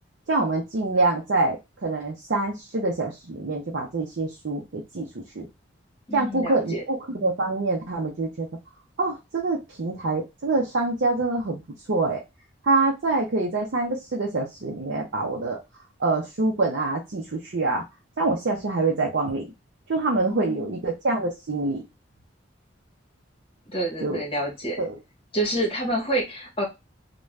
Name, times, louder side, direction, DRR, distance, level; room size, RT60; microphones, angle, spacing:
voice 1, 0.3-5.5 6.1-8.5 9.0-11.6 11.9-12.2 12.6-17.8 18.2-19.4 19.9-21.8 24.0-24.2 24.8-25.0, right 3 dB, 65° right, -1 dB, 0.6 m, -25 dB
voice 2, 6.1-6.8 20.3-20.8 23.7-24.8 25.3-26.7, right 1 dB, 30° left, 0 dB, 0.9 m, -28 dB
2.5 x 2.2 x 3.1 m, 0.23 s
head